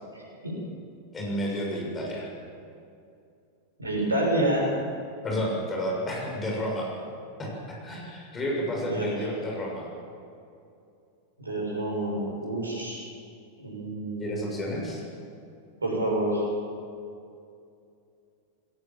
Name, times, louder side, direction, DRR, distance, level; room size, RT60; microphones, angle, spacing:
voice 1, 1.1-2.3 5.2-6.9 7.4-9.9 14.2-15.0, equal, 20° left, -2 dB, 6.7 m, -31 dB
voice 2, 3.8-4.7 8.8-9.1 11.4-13.0 13.6-14.3 15.8-16.4, right 1 dB, 80° right, -2 dB, 6.8 m, -28 dB
21.5 x 17.5 x 7.6 m, 2.5 s
figure-of-eight pair, 90°, 0 cm